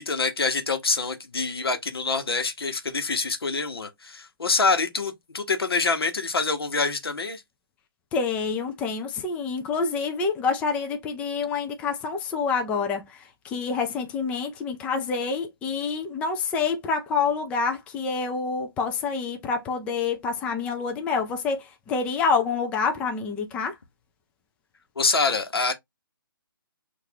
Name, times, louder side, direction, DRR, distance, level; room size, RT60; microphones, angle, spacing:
voice 1, 0.0-7.4 25.0-25.7, left 4 dB, 80° left, 1.0 m, -26 dB
voice 2, 8.1-23.8, left 5 dB, 10° left, 0.4 m, -27 dB
6.2 x 2.5 x 2.7 m
hypercardioid pair, 150°, 12 cm